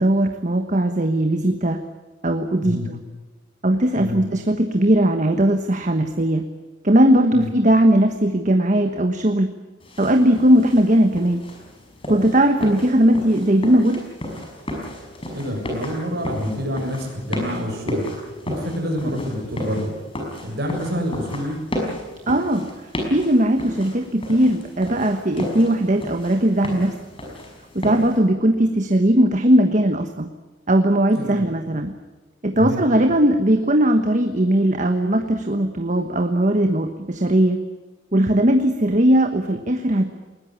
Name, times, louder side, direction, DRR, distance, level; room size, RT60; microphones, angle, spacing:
voice 1, 0.0-1.8 2.2-3.0 3.6-6.4 6.8-9.5 10.0-11.4 12.1-14.0 22.3-22.7 23.1-26.9 27.7-30.3 30.7-31.9 32.4-37.6 38.1-40.0, right 1 dB, 40° right, 7 dB, 1.2 m, -18 dB
sound 1, 9.8-28.2, equal, 30° left, 5.8 m, -33 dB
voice 2, 15.3-18.0 18.5-19.9 20.4-21.6 31.2-31.4 32.5-32.8, equal, 55° right, 2 dB, 7.2 m, -27 dB
20.5 x 19.5 x 9.7 m, 1.3 s
head